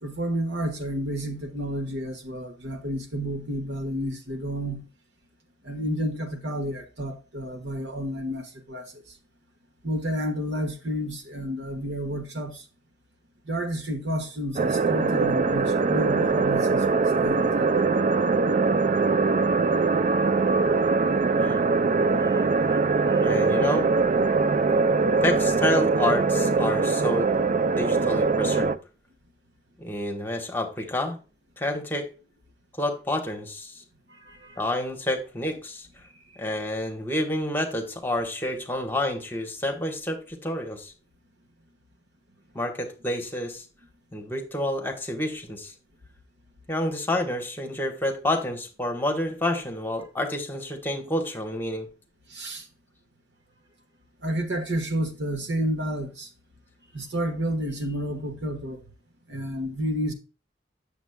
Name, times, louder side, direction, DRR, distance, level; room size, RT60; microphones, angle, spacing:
voice 1, 0.0-4.9 5.6-9.0 9.8-12.6 13.4-17.8 22.1-23.4 34.2-34.6 52.3-52.6 54.2-56.3 56.9-58.8 59.3-60.1, equal, 75° right, 1.4 m, -31 dB
sound 1, 14.6-28.8, right 4 dB, 45° right, 0.4 m, -22 dB
voice 2, 23.2-23.9 25.2-27.3 27.8-28.8 29.8-31.2 31.6-32.1 32.8-33.8 34.6-35.9 36.4-40.9 42.5-43.6 44.1-45.7 46.7-51.9, left 1 dB, 10° left, 1.2 m, -29 dB
8.2 x 7.1 x 2.2 m
head